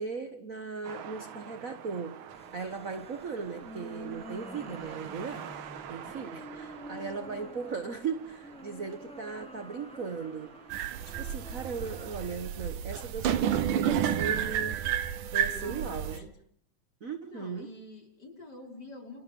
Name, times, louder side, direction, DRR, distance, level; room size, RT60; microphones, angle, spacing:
voice 1, 0.0-2.2 2.5-5.5 5.9-10.6 11.0-14.9 15.3-16.3 17.0-17.7, right 5 dB, 50° right, 1.0 m, -37 dB
sound 1, 0.8-12.3, right 9 dB, 70° right, 2.8 m, -47 dB
sound 2, 2.3-13.5, equal, 10° left, 0.3 m, -49 dB
sound 3, 10.7-16.2, right 9 dB, 90° right, 2.8 m, -30 dB
voice 2, 15.5-16.3 17.3-19.2, left 1 dB, 30° left, 5.7 m, -47 dB
30.0 x 27.5 x 5.5 m
omnidirectional pair, 3.5 m